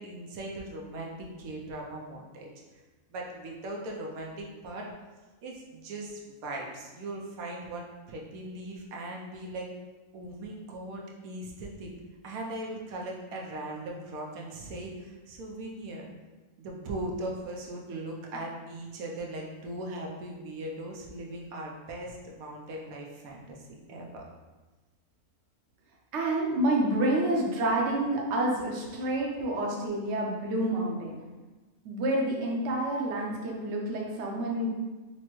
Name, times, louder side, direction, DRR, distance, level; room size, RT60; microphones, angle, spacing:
voice 1, 0.0-2.5 3.1-4.9 5.4-9.7 10.1-11.9 12.2-16.1 16.6-23.6 23.9-24.2, right 1 dB, 80° right, -1 dB, 1.1 m, -39 dB
voice 2, 26.1-31.1 31.8-34.7, right 1 dB, 60° right, -2 dB, 0.9 m, -28 dB
5.7 x 2.1 x 3.0 m, 1.2 s
omnidirectional pair, 1.5 m